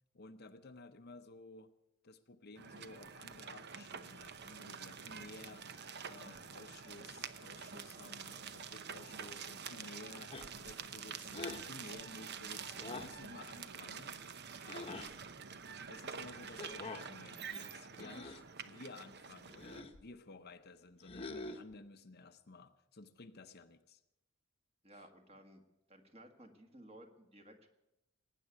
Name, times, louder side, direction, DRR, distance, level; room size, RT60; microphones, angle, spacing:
voice 1, 0.1-1.7 2.0-5.7 5.9-14.2 14.6-15.2 15.9-24.0 24.9-25.0, left 3 dB, 45° left, 9 dB, 0.7 m, -54 dB
sound 1, 2.5-19.8, right 6 dB, 50° right, 0.8 m, -47 dB
sound 2, 10.3-10.7 11.3-11.7 12.8-13.2 14.7-15.1 16.6-17.1 17.9-18.5 19.5-20.0 21.0-21.7, left 3 dB, 25° left, 1.0 m, -46 dB
voice 2, 24.8-25.6 25.9-27.7, right 1 dB, 30° right, 5 dB, 1.8 m, -57 dB
19.0 x 9.2 x 8.3 m, 0.91 s
head